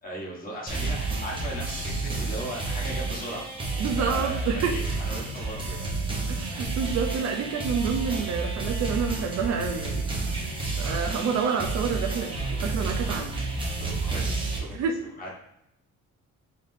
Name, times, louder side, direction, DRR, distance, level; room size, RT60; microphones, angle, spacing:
voice 1, 0.0-3.5 4.0-6.3 13.8-15.3, equal, 25° left, -2 dB, 1.1 m, -38 dB
sound 1, 0.7-14.6, right 3 dB, 15° right, 0.8 m, -30 dB
voice 2, 3.8-4.8 6.3-10.0 10.8-13.4 14.7-15.0, right 6 dB, 55° right, 3 dB, 0.5 m, -28 dB
3.9 x 3.7 x 2.6 m, 0.79 s
cardioid pair, 150°, 32 cm